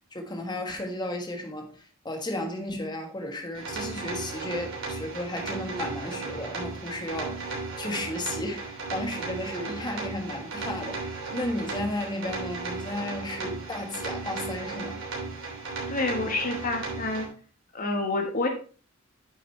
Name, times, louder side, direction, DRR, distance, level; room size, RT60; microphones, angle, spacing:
voice 1, 0.1-15.0, left 1 dB, 20° left, 1.4 m, -34 dB
sound 1, 3.5-17.3, right 3 dB, 60° right, 3.1 m, -35 dB
voice 2, 15.9-17.3 17.7-18.5, left 2 dB, 40° left, 1.4 m, -28 dB
8.9 x 6.4 x 3.3 m
head